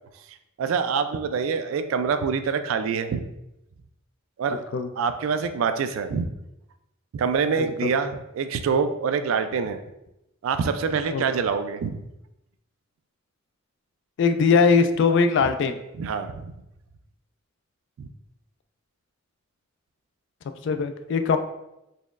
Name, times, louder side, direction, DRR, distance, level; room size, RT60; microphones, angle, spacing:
voice 1, 0.6-3.3 4.4-4.6 5.0-6.3 7.1-9.8 10.4-12.0 16.0-16.5 18.0-18.1, right 5 dB, 80° right, 9 dB, 0.3 m, -25 dB
voice 2, 14.2-15.8 20.6-21.4, left 5 dB, 60° left, 9 dB, 0.3 m, -20 dB
4.2 x 3.0 x 2.4 m, 0.89 s
head